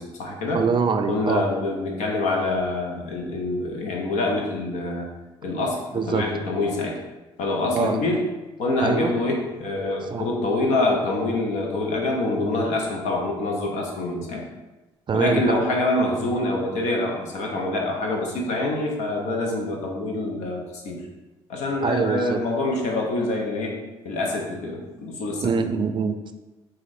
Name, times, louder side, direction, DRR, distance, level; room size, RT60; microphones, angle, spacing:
voice 1, 0.0-0.6 1.1-5.1 5.4-7.0 7.4-8.2 8.6-14.4 15.1-21.0 21.5-23.8 24.0-25.5, left 2 dB, 80° left, 0 dB, 0.9 m, -25 dB
voice 2, 0.5-1.4 5.9-6.3 7.7-8.0 8.8-9.2 10.1-10.2 15.1-15.7 21.8-22.4 25.4-26.3, right 5 dB, 40° right, 8 dB, 0.4 m, -24 dB
4.3 x 2.6 x 4.1 m, 1.1 s
supercardioid pair, 70°, 12 cm